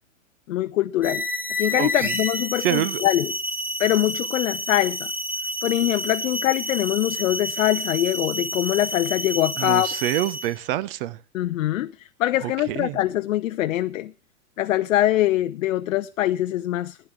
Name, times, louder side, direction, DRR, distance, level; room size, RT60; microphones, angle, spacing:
voice 1, 0.5-1.2 1.6-3.3 3.8-5.1 5.6-9.9 11.3-14.1 14.6-17.0, left 14 dB, 65° left, 0.6 m, -23 dB
sound 1, 1.0-10.6, equal, 5° right, 1.5 m, -29 dB
voice 2, 1.7-2.1 2.6-3.0 9.6-11.2 12.4-13.0, right 14 dB, 45° right, 0.5 m, -27 dB
14.5 x 10.5 x 3.4 m
hypercardioid pair, 110°, 41 cm